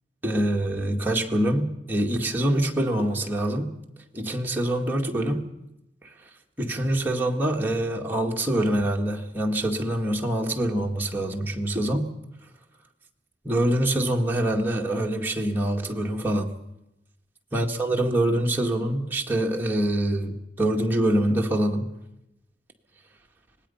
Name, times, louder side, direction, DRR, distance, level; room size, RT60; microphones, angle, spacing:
voice 1, 0.2-3.7 4.1-5.5 6.0-6.1 6.6-12.1 13.4-16.5 17.5-21.9, right 1 dB, 10° right, 1.9 m, -25 dB
25.5 x 19.0 x 5.7 m
head